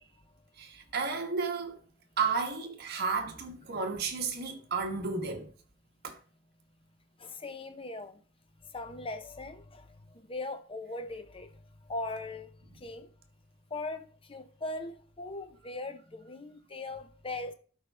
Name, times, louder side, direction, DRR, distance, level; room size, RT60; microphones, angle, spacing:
voice 1, 0.6-1.8 2.2-5.5 6.0-6.2, right 4 dB, 55° right, 1.3 m, -32 dB
voice 2, 7.2-8.2 8.7-11.5 11.9-12.5 12.8-13.1 13.7-17.5, left 2 dB, 30° left, 0.8 m, -40 dB
12.0 x 4.6 x 3.4 m
head